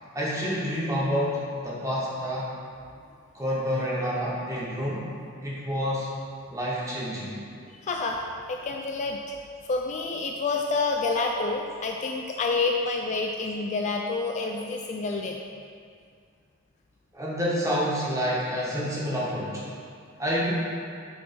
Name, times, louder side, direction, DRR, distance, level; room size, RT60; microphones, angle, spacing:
voice 1, 0.1-2.5 3.3-5.1 5.4-6.1 6.5-7.3 7.6-7.8 17.1-19.6 20.2-20.5, equal, 15° right, -7 dB, 1.3 m, -28 dB
voice 2, 7.7-9.2 9.7-15.4, left 3 dB, 35° left, 1 dB, 0.3 m, -28 dB
8.5 x 3.4 x 4.3 m, 2.3 s
head